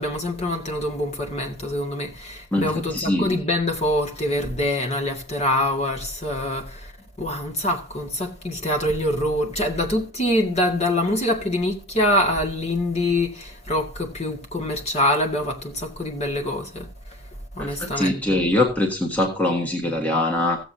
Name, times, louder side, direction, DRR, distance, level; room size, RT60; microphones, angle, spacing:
voice 1, 0.0-6.9 7.2-16.9 17.6-18.4, left 1 dB, 30° left, 1.8 m, -25 dB
voice 2, 2.5-3.4 17.6-20.6, left 1 dB, 10° left, 1.4 m, -23 dB
16.0 x 7.8 x 2.8 m
head